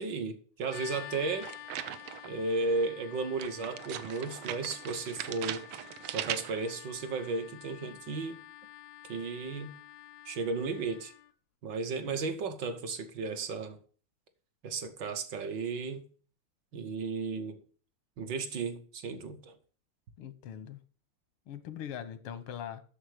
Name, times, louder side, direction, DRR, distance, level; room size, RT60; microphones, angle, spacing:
voice 1, 0.0-1.5 2.2-5.6 6.1-8.4 9.1-9.8 10.2-11.1 11.6-13.8 14.6-16.1 16.7-17.6 18.2-19.5, right 4 dB, 65° right, 1.5 m, -34 dB
sound 1, 0.7-11.3, left 12 dB, 75° left, 0.9 m, -49 dB
sound 2, 1.4-2.4 3.4-6.7, right 12 dB, 90° right, 1.5 m, -39 dB
voice 2, 20.2-20.8 21.5-22.8, left 9 dB, 90° left, 1.8 m, -41 dB
8.0 x 6.5 x 6.5 m
omnidirectional pair, 2.3 m